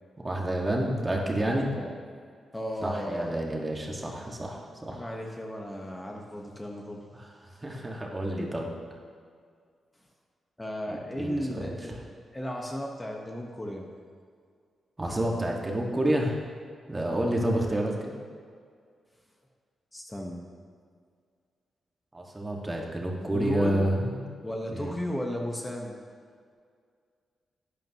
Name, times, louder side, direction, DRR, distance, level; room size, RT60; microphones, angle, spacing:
voice 1, 0.2-1.7 2.8-5.0 7.1-7.3 7.6-8.7 10.9-11.7 15.0-16.4 16.9-18.1 22.1-24.2 24.7-25.0, right 1 dB, 25° right, -1 dB, 1.8 m, -29 dB
voice 2, 2.5-3.3 4.9-7.1 10.6-11.9 12.3-13.9 17.1-17.4 19.9-20.4 23.3-23.9 24.4-26.0, equal, 15° left, 0 dB, 1.3 m, -35 dB
11.5 x 9.2 x 3.0 m, 2.1 s
supercardioid pair, 55°, 0 cm